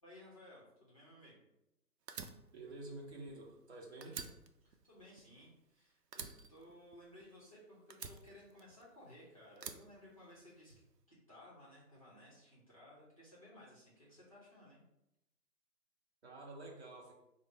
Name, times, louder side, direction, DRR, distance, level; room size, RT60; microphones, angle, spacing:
voice 1, 0.0-1.4 4.6-10.7 11.1-14.8, left 1 dB, 25° left, -7 dB, 0.6 m, -58 dB
Fire, 2.1-3.7 4.0-5.7 6.1-7.5 7.9-9.1 9.6-10.7, right 6 dB, 80° right, 0.6 m, -49 dB
voice 2, 2.5-4.2 16.2-17.1, right 2 dB, 45° right, -1 dB, 0.8 m, -49 dB
4.2 x 2.0 x 3.3 m, 0.88 s
figure-of-eight pair, 145°, 48 cm